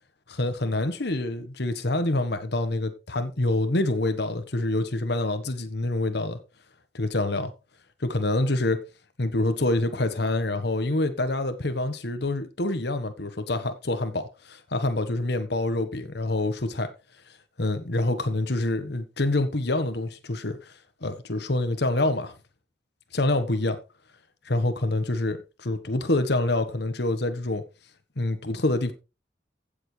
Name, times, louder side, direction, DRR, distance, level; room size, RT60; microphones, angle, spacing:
voice 1, 0.3-6.4 6.9-7.5 8.0-8.8 9.2-16.9 17.6-20.7 21.0-22.3 23.1-23.8 24.4-27.6 28.2-28.9, left 2 dB, 60° left, 1.4 m, -26 dB
15.5 x 7.1 x 3.3 m
head